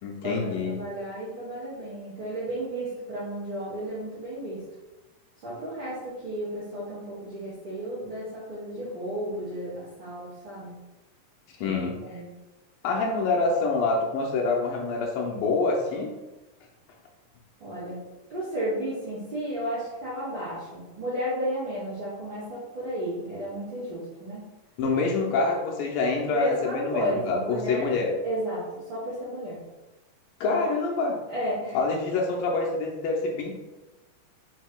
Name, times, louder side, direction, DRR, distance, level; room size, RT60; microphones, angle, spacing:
voice 1, 0.0-0.8 11.6-12.0 12.8-16.1 24.8-28.1 30.4-31.2 31.7-33.5, left 3 dB, 80° left, 0 dB, 2.2 m, -26 dB
voice 2, 0.7-4.6 5.4-10.7 11.6-11.8 12.0-12.3 17.6-18.0 18.3-24.5 26.3-27.9 28.2-29.6 30.4-30.6 31.3-31.8, equal, 65° right, -9 dB, 1.1 m, -33 dB
6.3 x 3.7 x 2.2 m, 1.1 s
omnidirectional pair, 4.2 m